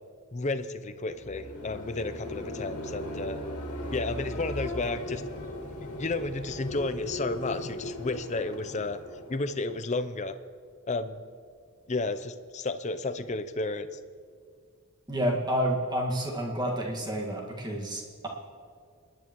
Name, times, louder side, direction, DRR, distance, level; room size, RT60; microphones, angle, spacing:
voice 1, 0.3-3.4 3.9-5.2 6.0-9.0 9.3-10.3 10.9-11.2 11.9-13.9, left 3 dB, 30° left, 10 dB, 0.5 m, -32 dB
sound 1, 1.0-10.1, left 1 dB, 90° left, 2.0 m, -38 dB
voice 2, 15.1-18.3, equal, 20° right, -1 dB, 1.7 m, -29 dB
27.5 x 10.5 x 3.1 m, 2.2 s
head